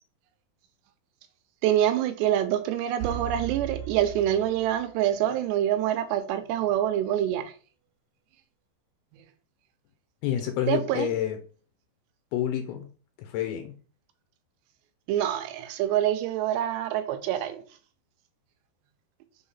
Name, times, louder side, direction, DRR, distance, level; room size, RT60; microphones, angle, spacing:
voice 1, 1.6-7.5 10.7-11.1 15.1-17.6, right 11 dB, 80° right, 2.6 m, -26 dB
sound 1, 3.0-5.2 5.5-5.6, right 10 dB, 65° right, 2.0 m, -37 dB
voice 2, 10.2-11.4 12.3-12.9 13.2-13.8, left 10 dB, 75° left, 2.4 m, -28 dB
6.4 x 3.7 x 5.5 m
omnidirectional pair, 5.3 m